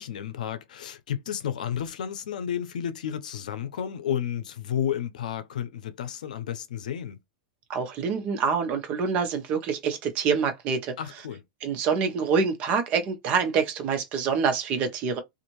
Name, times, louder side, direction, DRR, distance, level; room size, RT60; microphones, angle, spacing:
voice 1, 0.0-7.2 11.0-11.4, left 9 dB, 90° left, 0.6 m, -32 dB
voice 2, 7.7-10.9 11.6-15.2, right 5 dB, 35° right, 0.8 m, -26 dB
2.6 x 2.5 x 3.0 m
supercardioid pair, 145°, 4 cm